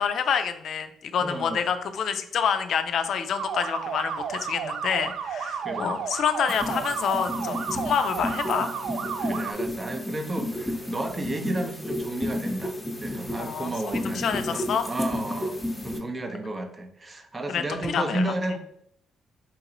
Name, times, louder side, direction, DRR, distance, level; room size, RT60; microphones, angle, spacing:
voice 1, 0.0-8.7 13.4-14.9 17.5-18.3, left 7 dB, 65° left, 9 dB, 0.3 m, -27 dB
voice 2, 1.2-1.6 5.6-6.0 9.2-15.6 15.8-18.6, right 1 dB, 25° right, 6 dB, 0.6 m, -32 dB
sound 1, 3.4-9.5, right 6 dB, 75° right, 0.3 m, -32 dB
sound 2, 6.5-16.0, left 1 dB, 10° left, 0.8 m, -32 dB
2.9 x 2.9 x 3.8 m, 0.70 s
cardioid pair, 90°, 0 cm